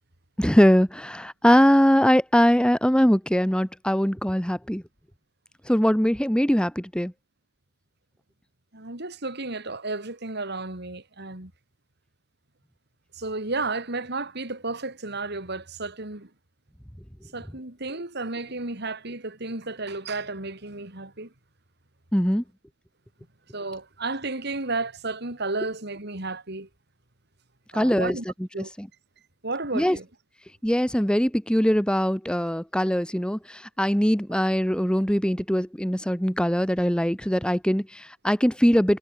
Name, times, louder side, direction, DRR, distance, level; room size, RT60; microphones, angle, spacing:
voice 1, 0.4-4.8 5.7-7.1 22.1-22.4 27.7-28.2 28.8-28.9 29.7-30.0 30.6-39.0, equal, 5° left, 1.7 m, -21 dB
voice 2, 8.7-11.5 13.2-16.3 17.3-21.3 23.5-26.7 27.7-28.2 28.5-28.7 29.4-30.1, right 3 dB, 55° right, 3.7 m, -32 dB
head